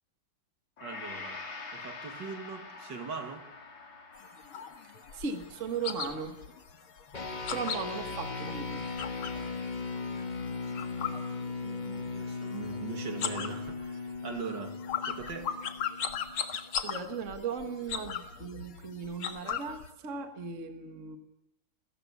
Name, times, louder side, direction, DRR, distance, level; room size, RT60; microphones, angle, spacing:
Gong, 0.8-9.1 9.5-9.7, left 4 dB, 65° left, 3.5 m, -47 dB
voice 1, 0.8-1.5 1.7-3.5 11.6-14.8 15.1-15.6, right 5 dB, 55° right, 2.6 m, -41 dB
sound 1, 4.2-9.5 9.8-12.0 12.2-12.8 13.1-19.9, left 7 dB, 80° left, 2.5 m, -38 dB
voice 2, 5.1-6.4 7.5-8.9 16.8-21.2, right 5 dB, 40° right, 1.8 m, -37 dB
sound 2, 7.1-16.8, left 4 dB, 25° left, 1.4 m, -38 dB
29.5 x 14.5 x 8.5 m
omnidirectional pair, 2.3 m